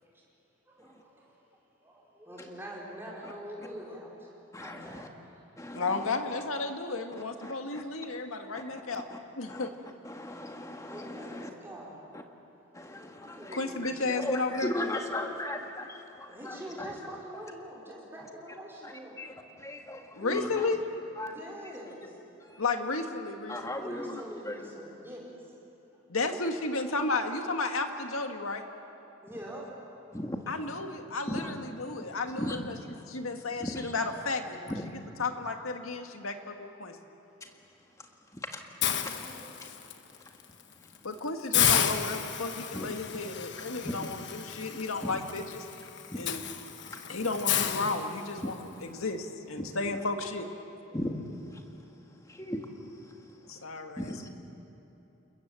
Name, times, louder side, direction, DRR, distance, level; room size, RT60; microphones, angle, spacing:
voice 1, 0.7-1.3 1.8-5.1 10.9-12.1 13.2-14.3 16.0-19.2 21.3-22.6 23.8-25.5 29.2-29.7 38.8-39.7 49.5-49.6 49.9-50.0 50.9-51.0, equal, 10° right, -4 dB, 5.2 m, -45 dB
voice 2, 4.5-5.1 5.6-6.1 7.4-7.5 9.1-9.2 9.5-9.7 10.0-11.5 12.1-12.2 12.7-13.6 14.2-16.9 18.8-18.9 19.2-20.7 21.2-21.3 22.5-22.6 23.5-24.5 30.1-30.4 31.3-31.5 32.4-32.7 33.6-33.9 34.7-34.9 37.4-37.5 38.3-38.6 39.0-39.1 40.1-40.2 42.7-42.9 43.8-44.1 45.0-45.2 46.1-46.3 46.6-46.7 47.1-47.2 48.4-48.5 49.6-49.7 50.9-51.3 51.5-51.6 52.3-52.7 53.0-53.1 53.5-53.6 54.0-54.3, left 1 dB, 15° left, 3 dB, 1.8 m, -37 dB
voice 3, 5.7-9.1 9.4-9.7 13.5-14.7 20.2-20.8 22.6-23.9 26.1-28.6 30.5-32.8 33.1-37.0 41.0-45.6 46.2-46.4 47.1-50.5 53.5-54.3, left 3 dB, 90° left, 5 dB, 1.9 m, -33 dB
Hiss, 38.8-39.9 40.4-40.6 40.9-41.0 41.5-48.6, left 9 dB, 55° left, 1.2 m, -31 dB
29.5 x 20.5 x 7.7 m, 3.0 s
head